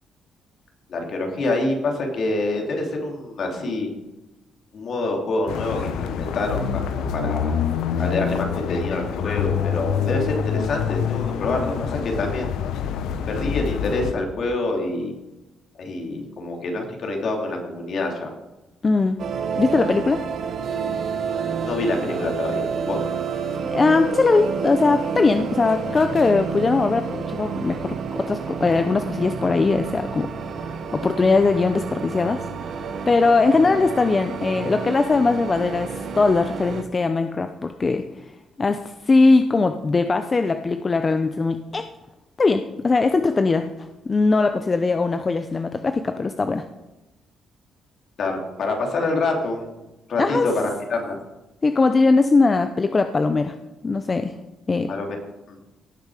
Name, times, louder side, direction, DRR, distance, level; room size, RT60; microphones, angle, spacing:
voice 1, 0.9-3.9 4.7-7.5 8.0-12.5 13.3-15.1 15.8-18.3 21.6-23.0 48.2-49.8 50.1-51.2 54.9-55.2 55.5-55.6, left 2 dB, 60° left, 1 dB, 3.0 m, -26 dB
sound 1, 5.5-14.1, left 8 dB, 85° left, 0.9 m, -26 dB
voice 2, 18.8-19.2 19.5-20.2 23.6-30.3 30.9-32.4 33.1-38.1 38.6-41.9 42.4-43.7 44.1-46.7 50.2-50.4 51.6-53.5 53.8-54.3 54.7-54.9, left 3 dB, 30° left, 8 dB, 0.6 m, -20 dB
sound 2, 19.2-36.8, right 6 dB, 60° right, 1.2 m, -30 dB
sound 3, 20.4-26.8, right 9 dB, 80° right, 2.3 m, -39 dB
17.5 x 6.6 x 5.0 m, 1.0 s
cardioid pair, 90°, 0 cm